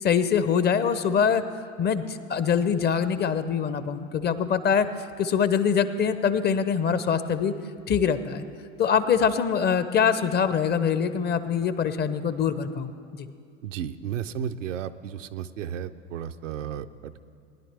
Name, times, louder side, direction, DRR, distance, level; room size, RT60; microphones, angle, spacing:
voice 1, 0.0-1.4 1.8-4.9 5.2-7.5 7.9-8.4 8.8-13.3, left 7 dB, 25° left, 12 dB, 0.5 m, -24 dB
voice 2, 13.6-16.9, right 9 dB, 80° right, 9 dB, 0.6 m, -33 dB
19.5 x 10.5 x 3.3 m, 2.4 s
hypercardioid pair, 80°, 37 cm